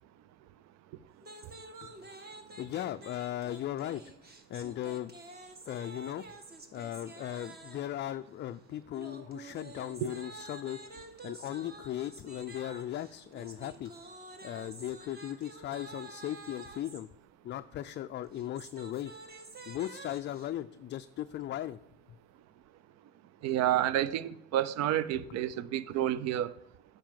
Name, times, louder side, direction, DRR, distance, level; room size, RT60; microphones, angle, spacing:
sound 1, 1.2-8.0 8.9-17.0 18.2-20.5, right 2 dB, 30° right, 1.4 m, -49 dB
voice 1, 2.6-4.0 4.5-5.1 5.6-6.3 6.7-13.9 14.4-17.1 17.4-19.1 19.7-21.8, left 12 dB, 35° left, 0.4 m, -37 dB
voice 2, 23.4-26.5, right 12 dB, 60° right, 0.6 m, -29 dB
9.2 x 4.8 x 7.5 m
supercardioid pair, 75°, 31 cm